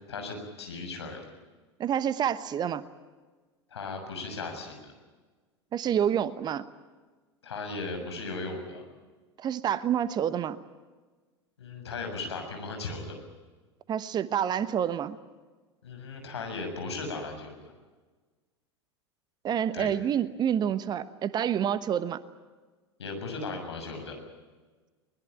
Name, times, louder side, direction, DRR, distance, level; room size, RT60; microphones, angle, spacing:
voice 1, 0.1-1.2 3.7-4.9 7.4-8.8 11.6-13.2 15.8-17.7 19.7-19.9 23.0-24.2, left 3 dB, 70° left, 4 dB, 6.8 m, -37 dB
voice 2, 1.8-2.8 5.7-6.6 9.4-10.6 13.9-15.2 19.4-22.2, right 9 dB, 30° right, 14 dB, 1.1 m, -28 dB
23.0 x 21.0 x 9.0 m, 1.3 s
figure-of-eight pair, 85°, 15 cm